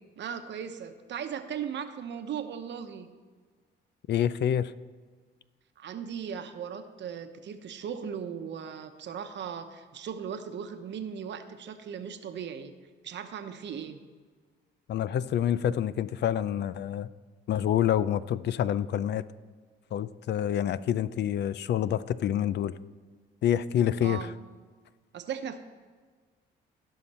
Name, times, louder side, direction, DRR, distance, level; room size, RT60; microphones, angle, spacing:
voice 1, 0.2-3.1 5.8-12.7 13.0-14.0 24.0-24.3 25.1-25.6, right 7 dB, 65° right, 8 dB, 1.0 m, -37 dB
voice 2, 4.1-4.7 14.9-17.1 17.5-19.2 19.9-22.7 23.4-24.3, left 10 dB, 60° left, 16 dB, 0.4 m, -27 dB
16.5 x 5.8 x 4.3 m, 1.5 s
cardioid pair, 90°, 20 cm